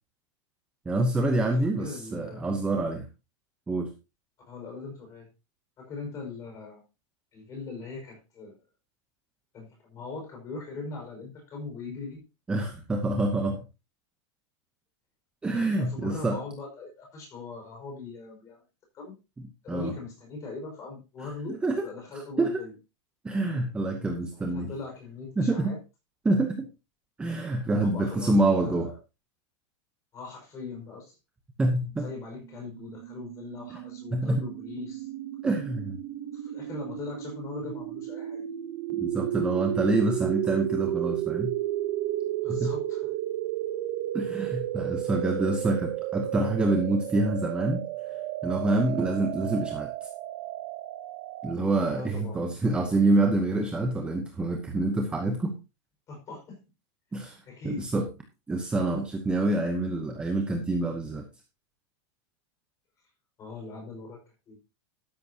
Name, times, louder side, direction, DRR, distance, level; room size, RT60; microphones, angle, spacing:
voice 1, 0.9-3.1 3.7-3.9 12.5-13.6 15.4-16.4 19.7-19.9 21.6-21.8 22.4-22.6 23.2-24.7 25.4-25.8 26.2-26.7 27.2-28.9 31.6-32.1 34.1-34.4 35.4-36.0 39.0-41.5 42.5-42.7 44.1-47.8 48.4-49.9 51.4-55.5 57.1-57.4 57.6-58.0 58.5-61.2, right 2 dB, 5° right, 4 dB, 0.8 m, -26 dB
voice 2, 1.4-2.5 4.5-5.3 5.8-6.8 7.3-8.6 9.5-12.2 12.6-12.7 15.7-18.6 18.9-19.2 19.6-22.7 24.3-25.8 27.8-29.0 30.1-31.2 32.0-35.1 36.3-38.5 42.4-43.1 51.9-52.4 56.1-56.6 57.5-57.9 63.4-64.5, left 3 dB, 20° left, 1 dB, 5.2 m, -40 dB
sound 1, 32.4-51.5, right 13 dB, 45° right, 0.9 m, -33 dB
13.0 x 10.5 x 2.8 m, 0.28 s
supercardioid pair, 175°, 15 cm